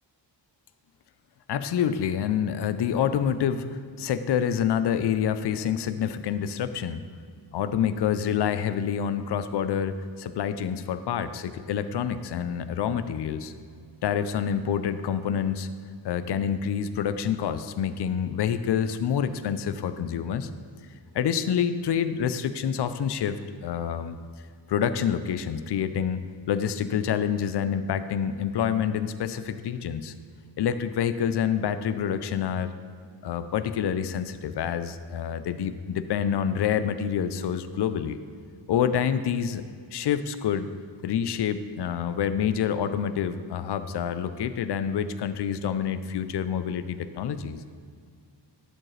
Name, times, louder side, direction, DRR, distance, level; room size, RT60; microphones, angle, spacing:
voice 1, 1.5-7.0 7.5-13.5 14.0-15.7 16.0-20.5 21.1-24.2 24.7-30.1 30.6-32.7 33.2-38.2 38.7-39.6 39.9-40.7 41.0-47.6, left 8 dB, 65° left, 12 dB, 0.5 m, -27 dB
11.0 x 5.2 x 3.2 m, 2.1 s
wide cardioid pair, 130°, 44 cm